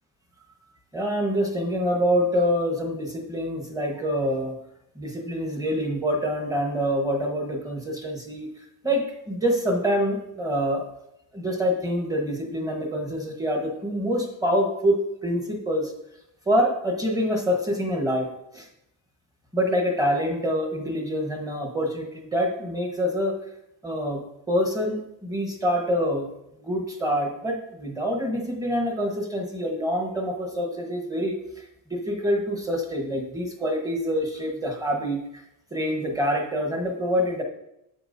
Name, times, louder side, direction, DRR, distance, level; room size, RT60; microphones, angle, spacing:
voice 1, 0.9-4.5 5.0-8.5 8.8-10.8 11.3-15.9 16.5-18.3 18.5-18.7 19.5-23.3 23.8-24.2 24.5-26.3 26.6-31.6 31.9-35.4 35.7-37.4, equal, 10° right, 1 dB, 1.2 m, -26 dB
8.8 x 7.1 x 2.7 m, 0.83 s
cardioid pair, 150°, 45 cm